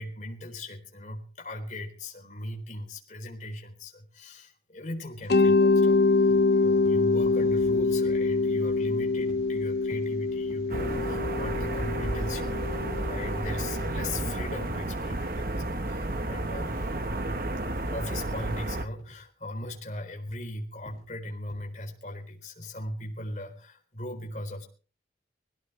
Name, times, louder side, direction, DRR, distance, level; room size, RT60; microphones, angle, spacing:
voice 1, 0.0-17.0 17.8-24.6, left 1 dB, 45° left, 2 dB, 4.0 m, -39 dB
Mallet percussion, 5.3-14.1, left 3 dB, 65° left, 0.7 m, -25 dB
sound 1, 6.3-6.5 6.8-7.1 7.4-7.6 8.0-8.3 8.7-8.9 9.3-9.5 9.9-10.1 10.5-10.7 11.1-11.3 11.7-11.9 12.3-12.6 13.0-13.2 13.4-13.8 14.2-14.4 14.7-14.9 15.3-15.5 15.9-16.2 16.5-16.7 17.1-17.4 17.8-18.0 18.4-18.6 19.0-19.2 19.6-19.8 20.3-20.5 20.9-21.1 21.5-21.6, equal, 25° left, 5.1 m, -50 dB
sound 2, 10.7-18.8, right 1 dB, 55° right, 1.2 m, -32 dB
21.5 x 16.5 x 3.4 m, 0.38 s
head